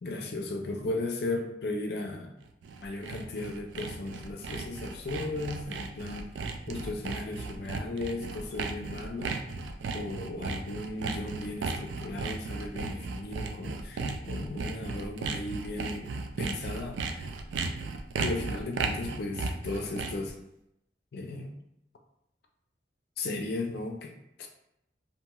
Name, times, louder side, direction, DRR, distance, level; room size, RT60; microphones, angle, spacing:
voice 1, 0.0-2.3 2.8-6.3 6.7-9.5 9.9-17.3 18.2-20.4 21.1-21.5 23.2-24.5, left 2 dB, 60° left, 3 dB, 0.4 m, -36 dB
Sawing, 2.5-20.3, right 4 dB, 85° right, 0.3 m, -35 dB
2.5 x 2.3 x 2.9 m, 0.81 s
head